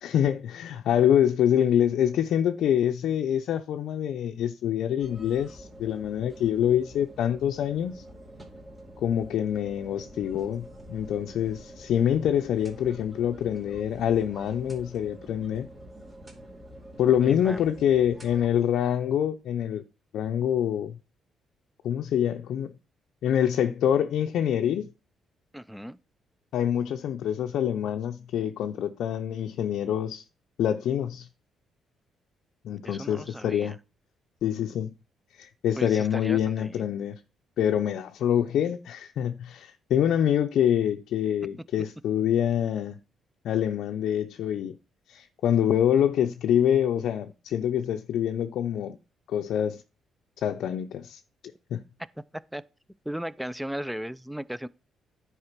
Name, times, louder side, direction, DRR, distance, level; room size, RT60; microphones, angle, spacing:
voice 1, 0.0-8.0 9.0-15.7 17.0-19.8 20.1-21.0 21.8-22.7 23.2-24.9 26.5-30.2 30.6-31.3 32.6-33.8 34.4-34.9 35.4-37.2 37.6-42.9 43.4-44.8 45.1-49.0 49.3-49.8 50.4-51.2 51.7-51.8, left 10 dB, 75° left, 0.5 m, -26 dB
sound 1, 5.0-18.5, right 1 dB, 25° right, 2.5 m, -47 dB
voice 2, 17.2-17.7 25.5-26.0 32.8-33.8 35.8-36.9 52.3-52.6 53.1-54.7, equal, 5° right, 0.5 m, -36 dB
9.8 x 4.8 x 5.9 m
cardioid pair, 90°, 0 cm